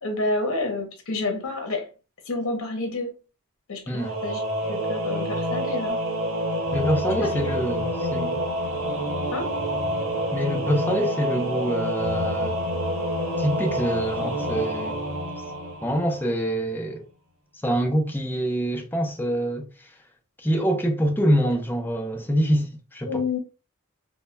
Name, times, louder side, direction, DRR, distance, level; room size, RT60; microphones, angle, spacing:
voice 1, 0.0-1.9 2.2-3.1 3.7-4.4 4.7-6.0 7.2-7.5 9.3-9.5 23.1-23.4, left 2 dB, 65° left, 0.7 m, -29 dB
Singing / Musical instrument, 3.9-16.4, equal, 65° right, 0.9 m, -27 dB
voice 2, 6.7-8.4 10.3-12.6 13.4-15.0 15.8-17.1 17.6-19.9 20.4-23.2, equal, 10° left, 0.4 m, -25 dB
2.2 x 2.1 x 3.1 m
head